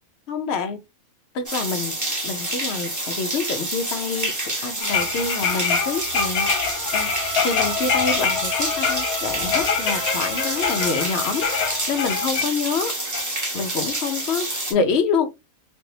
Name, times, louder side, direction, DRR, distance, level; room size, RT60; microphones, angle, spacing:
voice 1, 0.3-0.8 1.3-6.5 6.9-11.4 11.7-12.9 13.5-15.4, left 5 dB, 60° left, 0.7 m, -27 dB
sound 1, 1.5-14.7, right 1 dB, 15° right, 0.7 m, -28 dB
sound 2, 4.8-12.5 13.1-13.3, left 6 dB, 80° left, 1.2 m, -25 dB
Bowed string instrument, 6.8-11.7, left 2 dB, ahead, 1.4 m, -33 dB
3.3 x 2.6 x 2.7 m
omnidirectional pair, 1.5 m